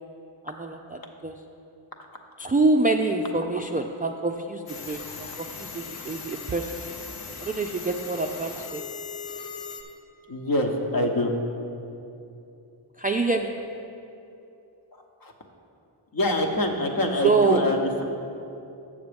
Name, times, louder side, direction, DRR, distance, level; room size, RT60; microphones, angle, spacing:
voice 1, 2.4-5.0 5.4-6.7 7.4-8.8 13.0-13.5 17.2-17.6, right 3 dB, 20° right, 3 dB, 0.3 m, -25 dB
sound 1, 4.7-9.8, left 5 dB, 65° left, 0.9 m, -39 dB
voice 2, 10.3-11.4 15.2-15.3 16.1-18.0, left 1 dB, 45° left, 3 dB, 1.1 m, -25 dB
7.1 x 6.7 x 5.1 m, 2.8 s
cardioid pair, 55°, 50 cm